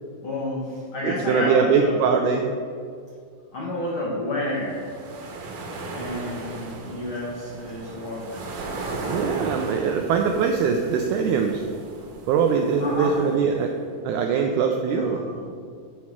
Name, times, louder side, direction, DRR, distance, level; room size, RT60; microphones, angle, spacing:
voice 1, 0.2-2.0 3.5-4.9 5.9-8.5 12.8-13.5 14.2-14.3 14.9-15.5, left 1 dB, 85° left, -4 dB, 1.1 m, -30 dB
voice 2, 1.3-2.5 9.1-11.6 12.3-13.7 14.1-15.2, right 6 dB, 85° right, 3 dB, 1.8 m, -22 dB
sound 1, 4.5-13.8, right 3 dB, 65° right, 1.9 m, -36 dB
9.9 x 4.2 x 5.9 m, 2.1 s
omnidirectional pair, 4.1 m